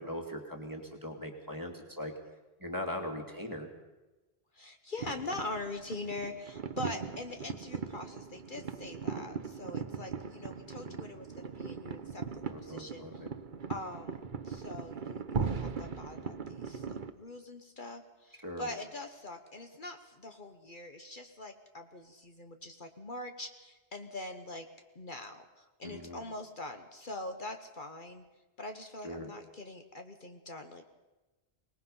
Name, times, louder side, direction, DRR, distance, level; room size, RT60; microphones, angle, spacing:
voice 1, 0.0-2.1 2.6-3.7 12.5-13.3 18.4-18.7 25.8-26.2 29.0-29.3, left 1 dB, 20° right, 2 dB, 2.5 m, -40 dB
voice 2, 4.5-13.0 13.7-24.7 24.9-28.2 28.6-30.8, left 2 dB, 50° left, 6 dB, 1.4 m, -43 dB
sound 1, 5.0-17.1, right 5 dB, 50° right, 1.1 m, -39 dB
24.5 x 19.5 x 5.6 m, 1.1 s
omnidirectional pair, 1.1 m